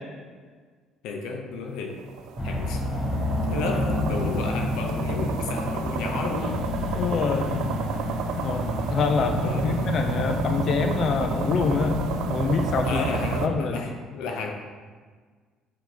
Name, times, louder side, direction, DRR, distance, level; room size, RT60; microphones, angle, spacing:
voice 1, 1.0-2.0 2.4-2.8 3.5-6.7 9.4-9.9 12.8-14.5, left 4 dB, 85° left, 2 dB, 0.7 m, -33 dB
sound 1, 1.9-13.5, right 7 dB, 80° right, 0.4 m, -33 dB
sound 2, 2.4-13.6, left 1 dB, 10° left, 0.7 m, -29 dB
voice 2, 6.9-7.6 8.4-11.9 12.3-13.0 13.4-13.9, left 5 dB, 50° left, 6 dB, 0.5 m, -26 dB
7.2 x 3.9 x 4.5 m, 1.5 s
cardioid pair, 130°, 0 cm